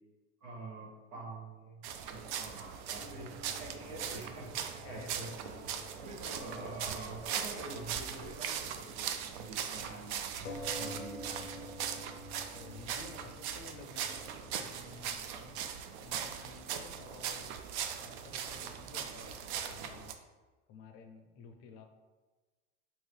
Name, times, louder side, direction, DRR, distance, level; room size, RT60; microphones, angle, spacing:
voice 1, 0.4-3.3 3.6-11.5, right 2 dB, 85° right, -5 dB, 1.3 m, -47 dB
sound 1, 1.8-20.1, right 8 dB, 65° right, 0.5 m, -40 dB
sound 2, 2.9-7.9, right 2 dB, 25° right, 0.8 m, -58 dB
sound 3, 3.0-6.9 7.1-7.2 10.4-15.7, left 2 dB, 90° left, 0.5 m, -50 dB
voice 2, 4.6-5.9 12.5-15.7 16.0-17.6 18.0-20.2 20.7-21.9, left 4 dB, 40° left, 6 dB, 0.5 m, -53 dB
2.9 x 2.7 x 3.2 m, 1.3 s
supercardioid pair, 120°, 37 cm